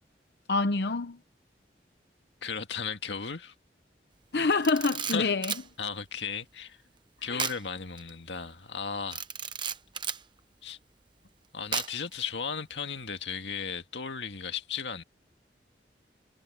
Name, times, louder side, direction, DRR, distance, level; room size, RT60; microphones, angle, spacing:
voice 1, 0.5-1.2 4.3-5.5 7.3-7.5, left 3 dB, 65° left, 0.8 m, -27 dB
voice 2, 2.4-3.5 5.1-5.3 5.8-6.8 7.2-9.2 10.6-10.8 11.5-15.0, left 6 dB, 90° left, 1.9 m, -35 dB
Camera, 4.5-5.7 7.4-7.6 8.0-8.1 9.1-10.2 11.7-12.1, right 7 dB, 25° right, 1.0 m, -34 dB
head